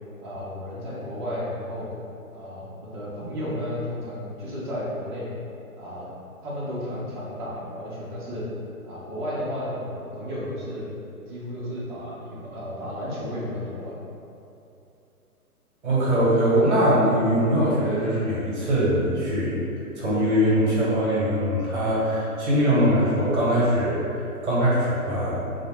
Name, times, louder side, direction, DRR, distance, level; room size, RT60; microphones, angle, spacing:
voice 1, 0.2-1.9 2.3-5.3 5.8-6.1 6.4-8.5 8.8-10.9 11.3-14.0, equal, 35° right, -7 dB, 0.6 m, -33 dB
voice 2, 15.8-19.5 20.0-25.6, equal, 50° right, -8 dB, 1.0 m, -22 dB
2.6 x 2.1 x 3.1 m, 2.7 s
figure-of-eight pair, 135°, 45 cm